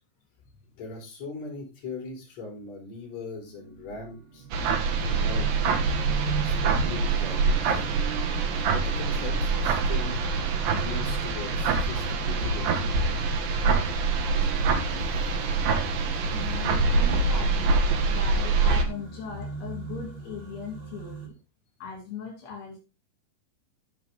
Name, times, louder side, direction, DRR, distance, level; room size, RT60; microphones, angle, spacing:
voice 1, 0.8-4.5 5.0-5.6 6.3-7.8 8.6-13.2, left 4 dB, 40° left, -2 dB, 5.1 m, -40 dB
sound 1, 3.2-21.3, right 5 dB, 40° right, 2.7 m, -41 dB
sound 2, 4.5-18.8, right 4 dB, 65° right, 2.9 m, -25 dB
voice 2, 13.7-15.2 16.0-17.8 18.0-21.3 21.8-22.8, left 6 dB, 75° left, 1 dB, 4.3 m, -40 dB
14.0 x 6.1 x 3.5 m, 0.28 s
omnidirectional pair, 4.9 m